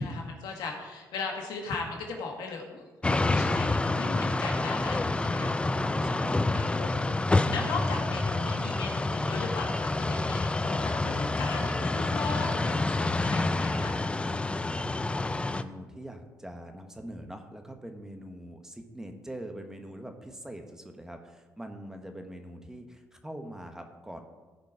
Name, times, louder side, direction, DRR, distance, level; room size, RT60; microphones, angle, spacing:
voice 1, 0.0-6.2 6.5-7.2 7.5-14.0, left 4 dB, 85° left, 1 dB, 1.8 m, -37 dB
sound 1, 3.0-15.6, left 2 dB, 15° left, 0.5 m, -28 dB
voice 2, 6.0-6.9 14.6-24.2, right 1 dB, 10° right, 5 dB, 1.3 m, -43 dB
15.0 x 5.2 x 4.8 m, 1.3 s
cardioid pair, 85°, 7 cm